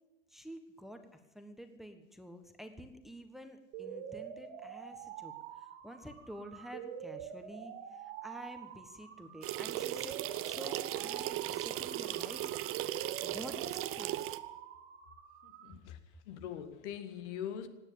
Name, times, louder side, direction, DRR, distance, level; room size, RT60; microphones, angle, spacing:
voice 1, 0.3-10.2 10.4-12.5 13.2-14.3, equal, ahead, 1.3 m, -49 dB
sound 1, 3.7-15.7, right 8 dB, 65° right, 2.9 m, -46 dB
sound 2, 9.4-14.4, right 14 dB, 35° right, 0.8 m, -37 dB
voice 2, 15.4-16.0 16.2-17.7, left 9 dB, 65° left, 1.8 m, -42 dB
17.5 x 9.6 x 8.6 m
hypercardioid pair, 115°, 37 cm